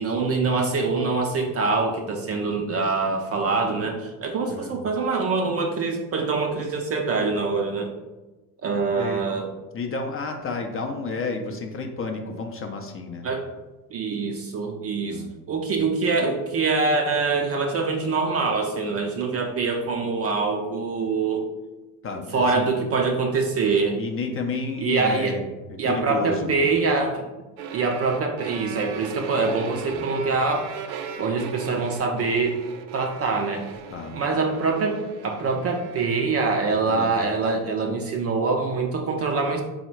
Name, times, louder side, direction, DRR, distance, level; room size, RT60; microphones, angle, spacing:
voice 1, 0.0-7.9 8.6-9.5 13.2-13.4 13.9-21.5 22.3-24.0 24.8-25.4 25.8-27.2 27.7-30.7 31.2-32.6 32.9-33.8 34.1-39.6, right 4 dB, 30° right, 3 dB, 0.4 m, -24 dB
voice 2, 8.9-9.3 9.7-13.2 15.1-15.3 22.0-22.7 24.0-26.5 29.9-30.1 33.9-34.2 36.9-37.1, left 3 dB, 30° left, 3 dB, 0.5 m, -31 dB
sound 1, 27.6-36.4, right 7 dB, 80° right, 0.6 m, -38 dB
3.7 x 2.1 x 4.4 m, 1.2 s
hypercardioid pair, 70°, 49 cm